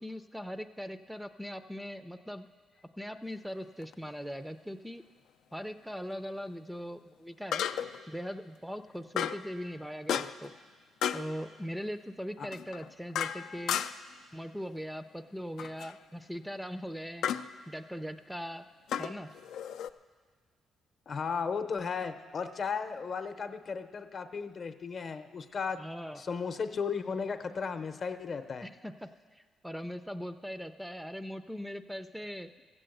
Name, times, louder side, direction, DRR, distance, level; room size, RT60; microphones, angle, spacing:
voice 1, 0.0-2.5 3.0-5.0 5.5-7.7 8.1-10.5 11.1-13.8 14.3-17.3 17.7-18.6 19.0-19.3 25.8-26.2 28.6-32.5, equal, 5° right, 10 dB, 0.4 m, -40 dB
sound 1, 3.8-3.9 7.5-8.1 9.2-9.5 10.1-10.5 11.0-11.3 12.5-14.1 15.6-16.0 17.2-17.5 18.9-19.9, left 9 dB, 80° left, 0.4 m, -33 dB
voice 2, 21.1-25.8 26.2-28.7, left 5 dB, 50° left, 9 dB, 0.7 m, -35 dB
14.5 x 7.8 x 7.8 m, 1.5 s
cardioid pair, 90°, 0 cm